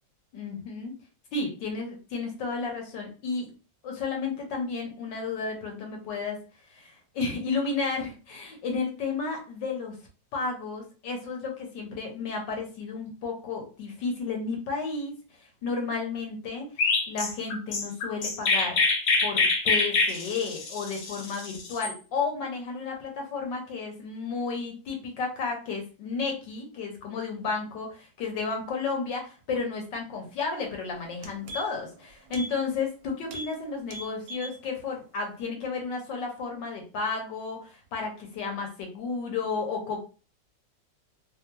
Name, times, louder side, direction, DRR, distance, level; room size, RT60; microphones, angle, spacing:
voice 1, 0.3-0.9 1.3-3.5 3.8-6.4 6.7-9.9 10.3-15.1 15.6-18.8 19.2-40.0, left 4 dB, 80° left, 1 dB, 1.6 m, -32 dB
Chirp tweet, 16.8-21.9, left 3 dB, 65° left, 1.1 m, -25 dB
sound 1, 30.6-30.7 31.0-31.9 32.3-32.5 32.8-33.0 33.3-33.5 33.8-34.6 34.9-35.0, equal, 65° right, 1.0 m, -40 dB
3.5 x 2.1 x 2.8 m, 0.35 s
omnidirectional pair, 1.9 m